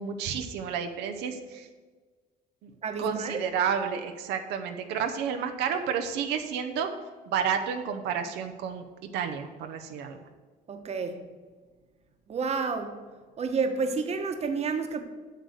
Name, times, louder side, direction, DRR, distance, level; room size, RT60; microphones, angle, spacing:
voice 1, 0.0-1.7 2.6-2.7 3.0-6.9 7.3-8.8 9.1-10.2, right 7 dB, 90° right, 6 dB, 0.8 m, -30 dB
voice 2, 2.8-3.4 10.7-11.2 12.3-13.0 13.4-15.0, right 4 dB, 40° right, 6 dB, 1.1 m, -30 dB
7.9 x 6.7 x 6.5 m, 1.4 s
cardioid pair, 110°, 17 cm